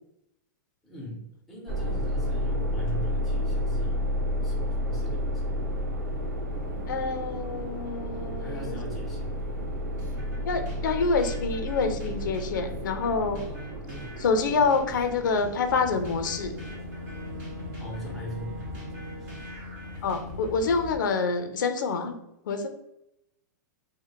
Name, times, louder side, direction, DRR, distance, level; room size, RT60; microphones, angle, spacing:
voice 1, 0.8-4.0 4.4-5.6 8.4-9.6 13.3-14.3 17.8-19.3, equal, ahead, -5 dB, 0.4 m, -41 dB
sound 1, 1.7-18.1, equal, 85° right, 0.9 m, -32 dB
voice 2, 6.9-8.8 10.4-13.4 14.2-16.5 20.0-22.2 22.5-22.7, left 4 dB, 85° left, 7 dB, 0.4 m, -27 dB
sound 2, 10.0-20.8, left 1 dB, 25° right, 1.5 m, -45 dB
Boat Water vehicle / Engine, 15.7-21.0, left 2 dB, 55° right, 0.7 m, -40 dB
3.0 x 2.0 x 2.2 m, 0.85 s
supercardioid pair, 175°, 10 cm